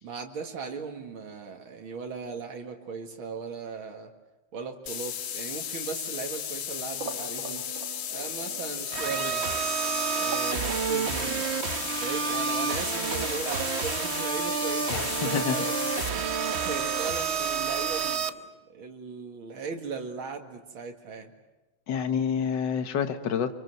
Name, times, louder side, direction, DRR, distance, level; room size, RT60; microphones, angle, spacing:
voice 1, 0.0-4.1 4.5-7.7 8.1-9.6 10.0-11.5 12.0-15.8 16.2-18.4 18.7-21.3, right 5 dB, 85° right, 3 dB, 2.8 m, -38 dB
sound 1, 4.9-16.1, left 9 dB, 85° left, 1.9 m, -35 dB
sound 2, 7.0-12.8, right 6 dB, 70° right, 2.4 m, -42 dB
sound 3, 8.9-18.3, right 6 dB, 45° right, 1.0 m, -29 dB
voice 2, 14.9-15.6 21.9-23.5, left 7 dB, 60° left, 8 dB, 2.0 m, -28 dB
27.0 x 24.5 x 8.0 m, 1.1 s
omnidirectional pair, 2.2 m